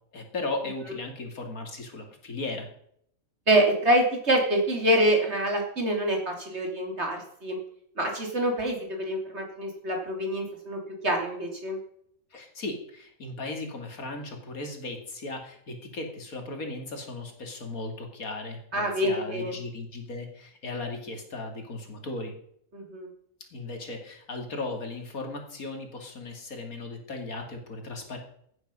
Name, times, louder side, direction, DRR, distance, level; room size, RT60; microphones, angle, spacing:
voice 1, 0.1-2.7 12.3-22.3 23.5-28.2, left 2 dB, 90° left, 4 dB, 3.0 m, -36 dB
voice 2, 3.5-7.6 8.0-11.8 18.7-19.6 22.7-23.1, right 1 dB, 50° right, 2 dB, 3.6 m, -26 dB
15.0 x 9.7 x 5.5 m, 0.69 s
omnidirectional pair, 1.4 m